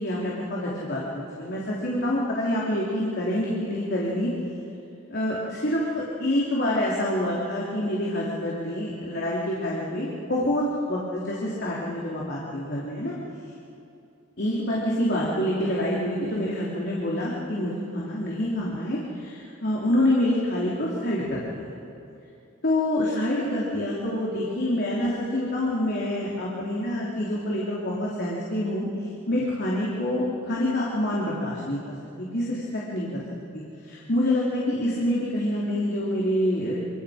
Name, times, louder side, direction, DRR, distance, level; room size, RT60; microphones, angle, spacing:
voice 1, 0.0-4.3 5.1-13.1 14.4-21.7 22.6-28.9 29.3-31.8 32.2-33.2 33.5-36.8, left 1 dB, 55° left, -5 dB, 3.3 m, -27 dB
29.0 x 26.0 x 5.1 m, 2.7 s
head